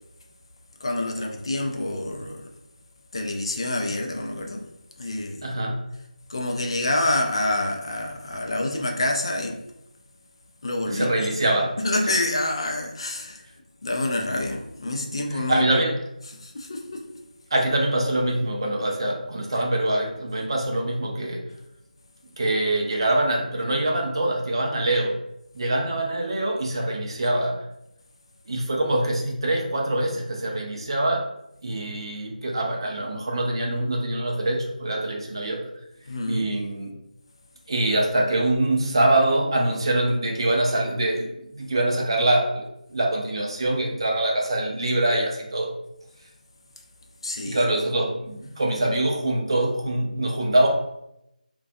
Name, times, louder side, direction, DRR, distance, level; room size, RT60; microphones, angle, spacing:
voice 1, 0.8-2.5 3.1-4.7 5.0-5.4 6.3-9.6 10.6-11.3 11.8-13.5 13.8-15.8 16.4-17.1 36.1-36.5 47.2-47.7, left 1 dB, 35° left, 0.4 m, -27 dB
voice 2, 5.4-5.8 10.9-11.8 15.3-16.0 17.5-21.5 22.4-25.2 25.5-27.6 28.5-31.3 31.6-35.6 36.3-37.0 37.7-42.6 42.9-45.7 47.4-50.7, right 1 dB, 35° right, 0.4 m, -24 dB
2.5 x 2.2 x 2.5 m
figure-of-eight pair, 165°, 5 cm